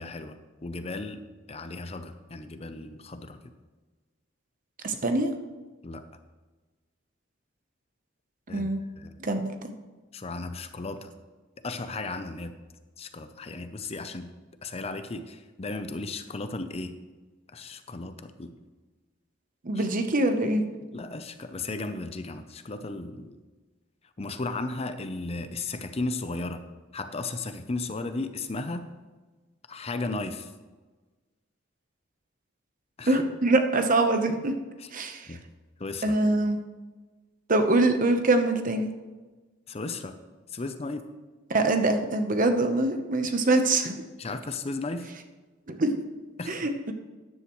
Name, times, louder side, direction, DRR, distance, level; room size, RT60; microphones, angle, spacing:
voice 1, 0.0-3.5 5.8-6.0 8.5-8.7 9.0-9.2 10.1-11.1 11.6-12.5 13.0-14.3 14.6-16.9 17.5-18.6 19.7-19.8 20.9-23.4 24.2-26.6 26.9-28.9 29.7-30.5 33.0-33.2 34.8-34.9 35.3-35.4 35.8-36.2 39.7-40.2 40.5-41.0 44.2-45.1 46.4-46.7, left 3 dB, 30° left, 10 dB, 0.6 m, -35 dB
voice 2, 4.8-5.3 8.5-8.8 9.2-9.7 19.6-20.6 33.0-34.5 34.9-35.3 36.0-36.6 37.5-38.9 41.5-44.0 45.7-46.0 46.5-46.9, right 2 dB, 45° right, 7 dB, 0.9 m, -24 dB
13.5 x 10.0 x 3.1 m, 1.3 s
head